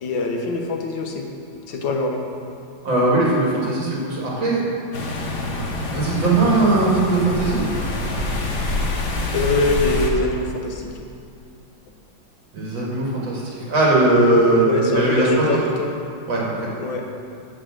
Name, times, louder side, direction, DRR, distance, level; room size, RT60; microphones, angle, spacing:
voice 1, 0.0-1.3 1.7-2.2 9.3-10.9 14.6-15.9 16.8-17.1, left 2 dB, 80° left, 2 dB, 1.7 m, -23 dB
voice 2, 2.8-4.6 5.9-7.6 12.5-15.6 16.3-16.7, right 2 dB, 75° right, -5 dB, 2.8 m, -19 dB
sound 1, 4.9-10.1, left 2 dB, 60° left, 1.6 m, -26 dB
6.6 x 6.4 x 7.7 m, 2.5 s
omnidirectional pair, 2.1 m